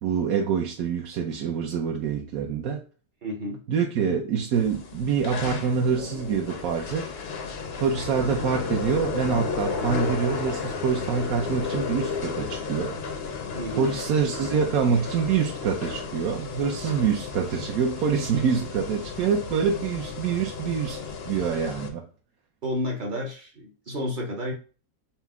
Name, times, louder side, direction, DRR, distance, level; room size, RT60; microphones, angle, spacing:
voice 1, 0.0-2.8 3.7-7.2 7.8-13.0 13.7-22.0, right 6 dB, 65° right, 0.9 m, -26 dB
voice 2, 3.2-3.6 13.5-14.0 22.6-24.5, equal, 50° right, 0.6 m, -31 dB
sound 1, 4.5-21.9, left 5 dB, 70° left, 0.5 m, -33 dB
5.6 x 2.1 x 3.5 m
omnidirectional pair, 2.0 m